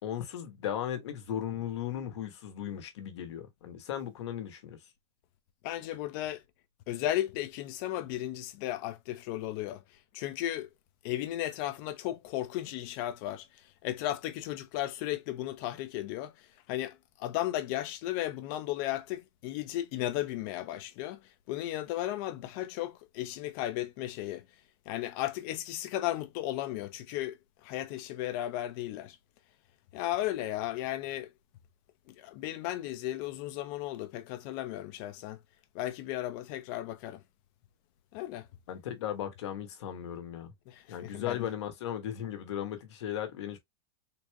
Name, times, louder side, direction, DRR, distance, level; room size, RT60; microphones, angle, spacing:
voice 1, 0.0-4.8 38.7-40.5 40.9-43.6, left 10 dB, 75° left, 1.3 m, -36 dB
voice 2, 5.6-6.4 6.9-9.8 10.1-10.7 11.0-21.2 21.5-24.5 24.9-29.2 29.9-31.3 32.1-35.4 35.7-37.2 38.1-38.5 40.7-41.5, left 14 dB, 50° left, 0.7 m, -35 dB
4.0 x 3.1 x 2.2 m
supercardioid pair, 140°, 15 cm